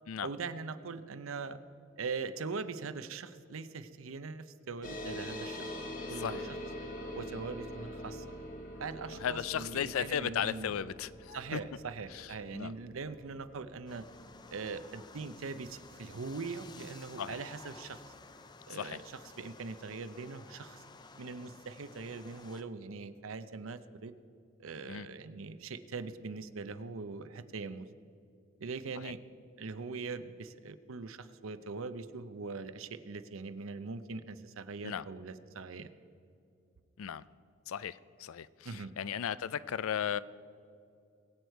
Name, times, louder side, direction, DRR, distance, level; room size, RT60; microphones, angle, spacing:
voice 1, 0.2-1.6 2.0-5.7 6.1-6.5 7.1-8.3 8.8-10.7 11.3-14.1 14.5-18.0 18.7-20.8 21.2-24.1 24.6-27.9 28.6-29.2 29.6-35.9 38.6-38.9, right 4 dB, 80° right, 12 dB, 0.6 m, -41 dB
sound 1, 4.8-15.8, left 1 dB, 40° left, 1.3 m, -44 dB
voice 2, 9.2-11.6 12.5-12.7 17.2-17.4 18.7-19.0 24.9-25.1 29.0-29.1 34.8-35.0 37.0-37.2 37.7-38.5 38.7-40.2, left 8 dB, 90° left, 18 dB, 0.4 m, -35 dB
sound 2, 13.9-22.6, left 4 dB, 20° left, 0.4 m, -54 dB
21.5 x 8.1 x 4.5 m, 2.5 s
head